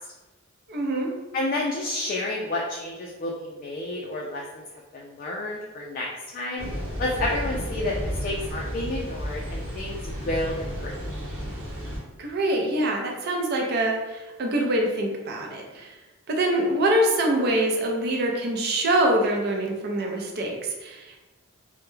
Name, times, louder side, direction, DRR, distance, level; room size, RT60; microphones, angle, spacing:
voice 1, 0.7-1.1 12.2-16.0 16.3-21.2, right 1 dB, 50° right, 1 dB, 0.5 m, -25 dB
voice 2, 1.3-4.6 4.9-6.7 7.0-10.9, left 2 dB, 40° left, -2 dB, 0.3 m, -30 dB
sound 1, 6.6-12.0, equal, 80° right, 0.9 m, -32 dB
2.2 x 2.0 x 3.1 m, 1.1 s
head